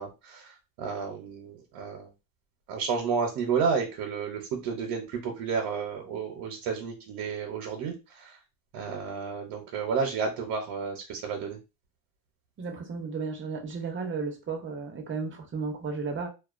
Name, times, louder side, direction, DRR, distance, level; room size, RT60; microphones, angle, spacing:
voice 1, 0.0-2.1 2.7-8.4 8.7-11.6, right 5 dB, 80° right, 0.7 m, -31 dB
voice 2, 12.6-16.3, right 4 dB, 30° right, 0.6 m, -34 dB
2.3 x 2.2 x 2.4 m
cardioid pair, 125°, 40 cm